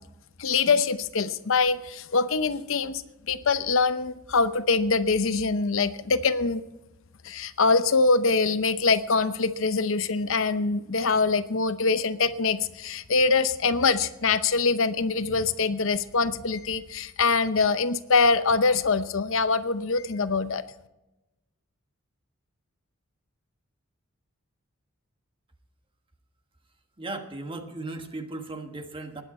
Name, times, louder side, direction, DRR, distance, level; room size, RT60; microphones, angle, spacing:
voice 1, 0.4-6.6 7.2-20.6, left 4 dB, 65° left, 12 dB, 0.7 m, -24 dB
voice 2, 27.0-29.2, right 2 dB, 25° right, 6 dB, 1.4 m, -36 dB
20.0 x 9.2 x 4.3 m, 0.99 s
head